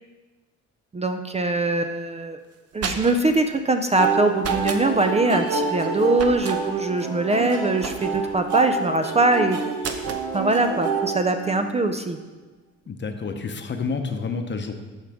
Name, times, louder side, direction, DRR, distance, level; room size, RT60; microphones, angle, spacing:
voice 1, 0.9-2.4 2.7-9.6 10.3-12.2, right 2 dB, 20° right, 6 dB, 0.5 m, -22 dB
sound 1, 2.5-3.4 4.4-4.8 6.1-6.6 7.8-8.3 9.8-10.3, right 5 dB, 55° right, 0.8 m, -32 dB
sound 2, 4.0-11.9, right 4 dB, 80° right, 1.3 m, -27 dB
voice 2, 12.9-14.7, left 4 dB, 35° left, 6 dB, 0.8 m, -29 dB
13.5 x 4.9 x 3.6 m, 1.3 s
cardioid pair, 90°, 30 cm